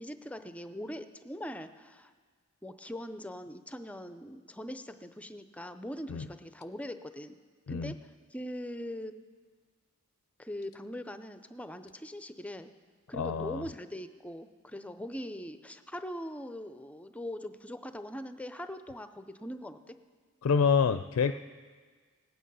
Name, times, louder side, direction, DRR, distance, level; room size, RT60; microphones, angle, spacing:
voice 1, 0.0-2.1 2.6-7.4 7.7-9.2 10.4-12.7 13.1-20.0, equal, 5° left, 10 dB, 0.5 m, -41 dB
voice 2, 13.1-13.6 20.4-21.3, left 6 dB, 70° left, 10 dB, 0.4 m, -27 dB
18.0 x 8.8 x 5.5 m, 1.5 s
head